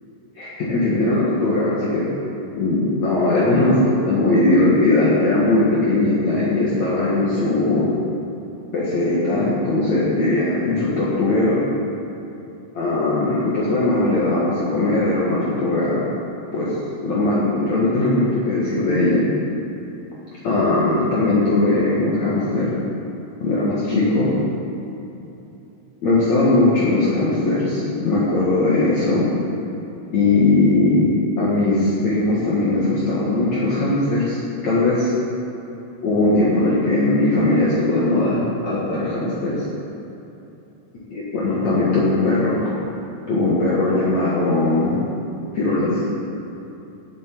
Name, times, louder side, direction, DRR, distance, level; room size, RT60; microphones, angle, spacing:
voice 1, 0.4-2.0 2.6-7.9 8.7-11.6 12.7-16.1 16.5-16.7 17.0-19.3 20.4-22.7 23.4-24.3 26.0-29.3 30.1-35.1 36.0-39.6 41.1-42.6 43.3-45.0 45.5-45.9, left 2 dB, 80° left, -7 dB, 1.6 m, -19 dB
17.5 x 7.8 x 4.5 m, 2.9 s
omnidirectional pair, 5.8 m